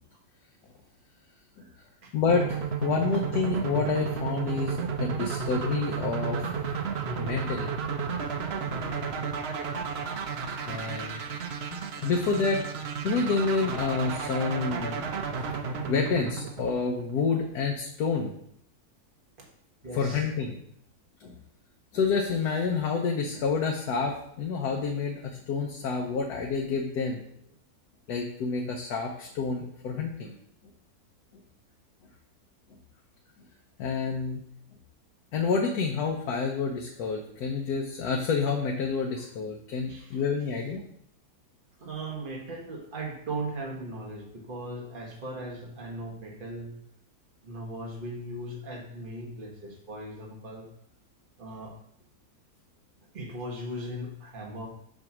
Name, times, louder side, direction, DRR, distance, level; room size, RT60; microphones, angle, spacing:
voice 1, 2.1-6.6 7.2-7.7 10.7-11.2 11.7-12.6 13.0-15.0 15.9-18.4 19.9-20.6 21.2-21.3 21.9-27.2 28.1-30.3 33.8-34.4 35.3-40.8, left 4 dB, 80° left, 1 dB, 1.3 m, -28 dB
sound 1, 2.3-17.2, right 5 dB, 55° right, 0.8 m, -32 dB
voice 2, 19.8-20.3 27.4-27.6 39.1-39.2 39.9-40.5 41.8-46.7 47.4-50.7 51.4-51.7 53.1-54.7, right 1 dB, 35° right, 0 dB, 1.3 m, -38 dB
7.6 x 2.8 x 5.9 m, 0.70 s
omnidirectional pair, 1.6 m